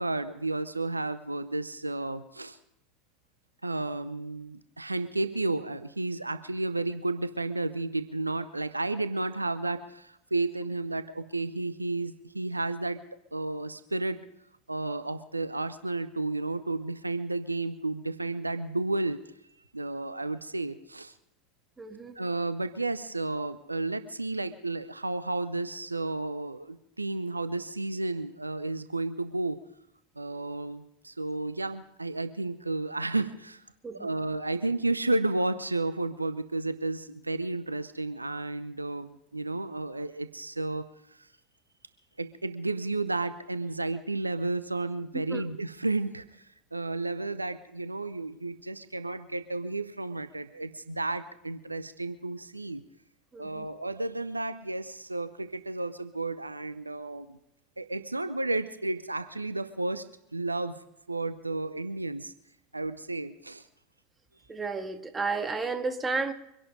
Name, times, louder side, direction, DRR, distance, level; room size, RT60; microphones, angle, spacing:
voice 1, 0.0-2.6 3.6-13.0 13.3-14.2 14.7-19.2 19.7-21.1 22.2-29.6 30.2-33.6 33.9-40.8 41.2-41.3 42.2-52.8 53.4-57.4 57.8-62.3 62.7-63.6, right 2 dB, 90° right, 13 dB, 0.7 m, -32 dB
voice 2, 21.8-22.1 33.8-34.1 45.1-45.4 53.3-53.7 64.5-66.3, right 4 dB, 15° right, 7 dB, 1.9 m, -32 dB
24.5 x 11.0 x 5.3 m, 0.81 s
figure-of-eight pair, 80°, 0 cm